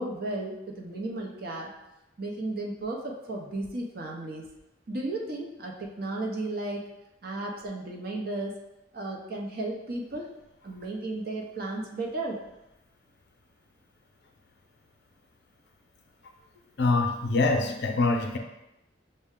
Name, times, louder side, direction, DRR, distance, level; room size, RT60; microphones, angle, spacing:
voice 1, 0.0-1.7 2.2-4.4 4.9-6.9 7.2-8.5 8.9-10.3 10.6-12.4, right 2 dB, 50° right, -1 dB, 0.6 m, -34 dB
voice 2, 16.8-18.4, left 3 dB, 60° left, 3 dB, 0.5 m, -24 dB
6.3 x 2.2 x 3.6 m, 0.93 s
head